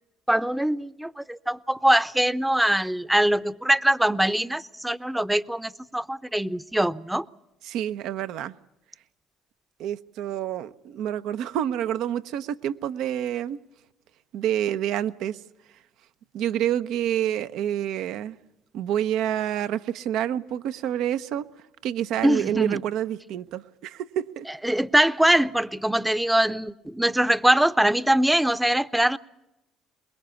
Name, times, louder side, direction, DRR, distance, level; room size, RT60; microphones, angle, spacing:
voice 1, 0.3-7.2 22.2-22.8 24.6-29.2, right 1 dB, 5° right, 14 dB, 0.7 m, -22 dB
voice 2, 7.6-8.5 9.8-13.6 14.3-15.4 16.3-18.4 18.7-21.4 21.8-24.5, right 10 dB, 70° right, 12 dB, 0.7 m, -28 dB
23.5 x 21.5 x 7.0 m, 0.92 s
hypercardioid pair, 60°, 0 cm